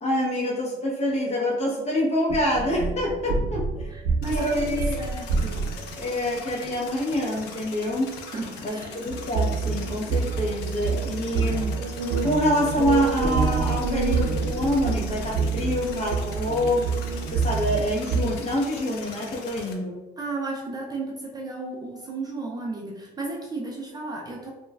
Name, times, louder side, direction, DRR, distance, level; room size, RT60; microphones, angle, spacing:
voice 1, 0.0-3.9 4.3-5.0 6.0-8.2 8.6-11.8 12.2-16.9 17.3-20.0, left 1 dB, 40° left, -3 dB, 0.9 m, -26 dB
sound 1, 2.3-6.0 9.1-18.3, right 4 dB, 65° right, 0.7 m, -27 dB
voice 2, 3.9-5.6 8.3-8.9 20.2-24.5, right 3 dB, 25° right, -1 dB, 0.4 m, -34 dB
sound 2, 4.2-19.7, left 4 dB, 85° left, 0.5 m, -41 dB
3.0 x 2.3 x 2.2 m, 1.1 s
cardioid pair, 110°, 17 cm